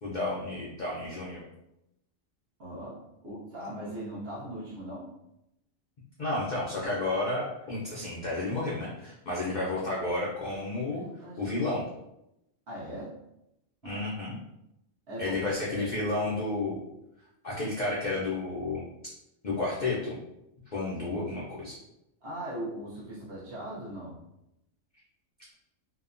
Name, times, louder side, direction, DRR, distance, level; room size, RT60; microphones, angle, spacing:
voice 1, 0.0-1.4 6.2-11.0 11.4-11.8 13.8-14.4 15.2-16.8 17.4-18.8 19.4-20.2 20.7-21.8, left 2 dB, 55° left, -6 dB, 0.5 m, -31 dB
voice 2, 2.6-5.1 10.9-11.5 12.7-13.2 13.8-14.3 15.1-15.4 15.6-15.8 22.2-24.2, right 1 dB, 55° right, -7 dB, 1.0 m, -40 dB
2.8 x 2.1 x 2.5 m, 0.86 s
omnidirectional pair, 1.4 m